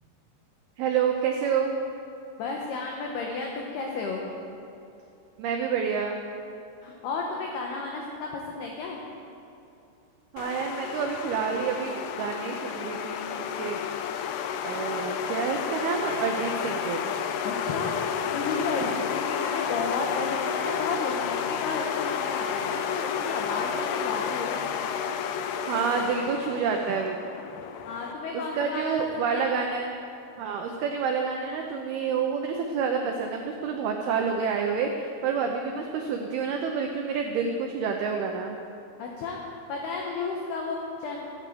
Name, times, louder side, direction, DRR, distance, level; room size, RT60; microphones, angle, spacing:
voice 1, 0.8-1.8 5.4-6.2 10.3-13.8 14.6-17.2 18.8-19.1 25.7-27.2 28.5-29.9 30.4-38.6, right 6 dB, 90° right, 3 dB, 2.2 m, -28 dB
voice 2, 2.4-4.2 6.8-9.0 17.4-17.9 18.3-24.7 27.8-29.5 39.0-39.4 39.7-41.3, left 4 dB, 70° left, 0 dB, 2.7 m, -33 dB
sound 1, 10.4-28.1, left 7 dB, 85° left, 3.2 m, -31 dB
15.0 x 9.1 x 7.8 m, 2.8 s
omnidirectional pair, 5.6 m